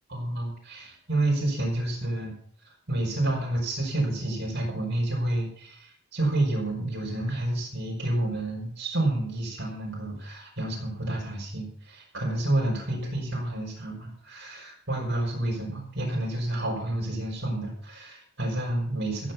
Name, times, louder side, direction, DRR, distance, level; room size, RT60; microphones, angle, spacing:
voice 1, 0.1-2.3 2.9-19.3, right 1 dB, 55° right, -1 dB, 5.2 m, -29 dB
15.0 x 8.5 x 6.2 m, 0.62 s
head